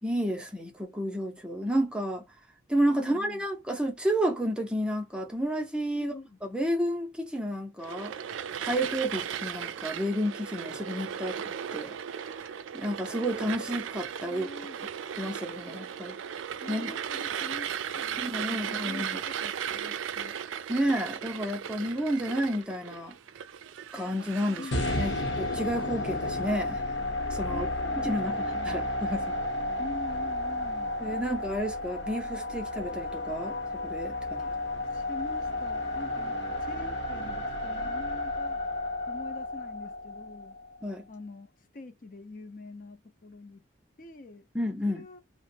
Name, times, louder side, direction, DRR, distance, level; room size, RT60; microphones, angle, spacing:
voice 1, 0.0-2.2 2.7-8.1 8.6-11.9 12.7-14.5 15.2-16.2 16.7-17.0 18.2-19.2 20.7-23.2 23.9-26.8 27.3-27.7 28.0-29.4 31.0-33.6 33.8-34.5 40.8-41.1 44.5-45.1, equal, 5° right, 0.5 m, -31 dB
voice 2, 3.0-3.4 6.0-6.4 14.3-14.8 16.6-20.4 24.6-25.1 27.5-28.9 29.8-31.0 34.4-34.5 34.9-38.6 39.1-40.6 41.1-41.5 41.7-43.6 44.0-44.5 44.9-45.2, left 2 dB, 45° left, 0.5 m, -45 dB
sound 1, 7.8-25.1, right 8 dB, 85° right, 0.3 m, -36 dB
sound 2, 24.7-40.8, left 1 dB, 70° left, 0.9 m, -32 dB
3.0 x 2.1 x 2.7 m
head